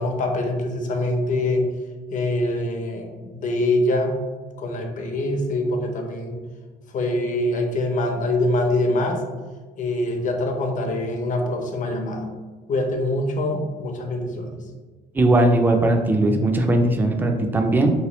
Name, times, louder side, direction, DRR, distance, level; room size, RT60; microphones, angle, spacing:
voice 1, 0.0-1.6 2.1-4.1 4.6-6.4 6.9-9.2 9.8-12.3 12.7-14.6, left 1 dB, 50° left, 3 dB, 0.6 m, -24 dB
voice 2, 15.1-17.9, right 2 dB, 10° right, 4 dB, 0.4 m, -19 dB
3.0 x 3.0 x 3.0 m, 1.4 s
cardioid pair, 110°, 17 cm